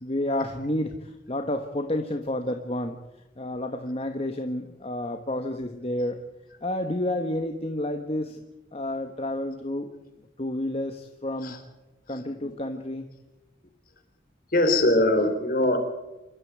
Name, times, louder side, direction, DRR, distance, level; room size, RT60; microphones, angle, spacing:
voice 1, 0.0-3.0 3.4-6.2 6.6-8.4 8.7-9.9 10.4-11.6 12.1-13.1, left 1 dB, 30° left, 6 dB, 1.4 m, -30 dB
voice 2, 12.1-12.5 14.5-15.8, left 1 dB, 50° left, 7 dB, 3.8 m, -23 dB
26.5 x 13.0 x 9.5 m, 1.0 s
head